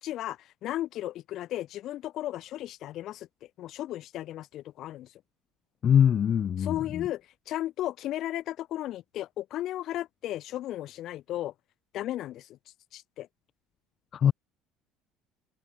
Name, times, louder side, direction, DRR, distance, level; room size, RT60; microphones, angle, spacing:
voice 1, 0.0-5.1 6.6-11.5 11.9-12.6 12.9-13.3, left 13 dB, 55° left, 5.7 m, -35 dB
voice 2, 5.8-7.0 14.1-14.3, left 8 dB, 35° left, 2.7 m, -23 dB
cardioid pair, 130°, 0 cm